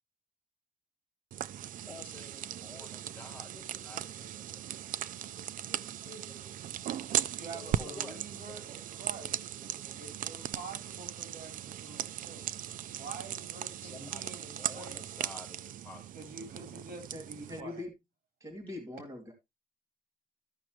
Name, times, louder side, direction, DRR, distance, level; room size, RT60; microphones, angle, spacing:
sound 1, 1.3-17.6, right 11 dB, 65° right, 0.4 m, -38 dB
voice 1, 1.9-4.6 4.9-5.0 5.3-6.8 7.5-8.7 9.2-10.0 13.8-16.2 16.5-16.9, left 2 dB, 10° left, 3.0 m, -52 dB
voice 2, 7.4-9.4 10.0-12.5 12.9-15.0 16.1-17.9, right 3 dB, 80° right, 3.9 m, -47 dB
voice 3, 17.1-17.9 18.4-19.3, left 2 dB, 20° right, 2.5 m, -42 dB
13.5 x 6.1 x 3.0 m
cardioid pair, 165°, 15 cm